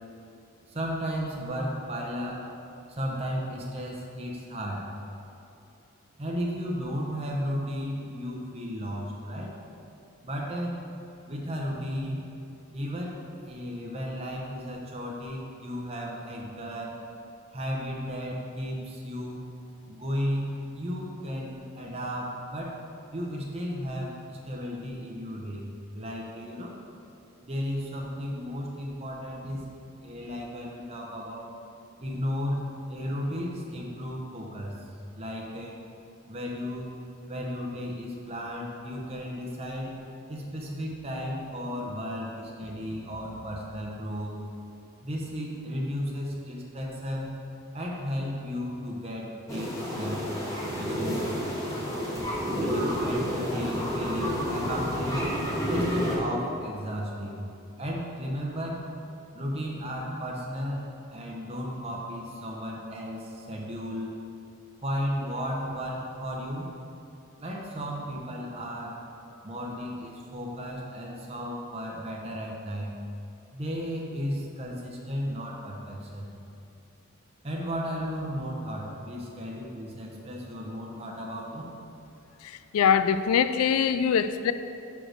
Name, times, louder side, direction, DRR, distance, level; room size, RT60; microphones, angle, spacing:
voice 1, 0.7-2.4 2.9-4.9 6.2-9.6 10.2-10.8 11.3-12.2 12.7-17.0 17.5-19.4 19.9-25.7 25.9-26.8 27.4-29.7 30.0-31.6 32.0-34.8 35.1-35.7 36.3-36.9 37.3-40.0 40.3-44.4 45.0-47.3 47.7-50.2 50.6-51.4 52.6-55.3 55.7-57.4 57.8-58.8 59.3-64.1 64.8-66.7 67.4-69.0 69.4-72.9 73.5-76.3 77.4-81.8, equal, 30° right, -2 dB, 0.7 m, -34 dB
sound 1, 49.5-56.2, equal, 15° left, 1.4 m, -30 dB
voice 2, 82.7-84.5, left 7 dB, 80° left, 12 dB, 0.3 m, -23 dB
5.8 x 5.0 x 6.3 m, 2.8 s
head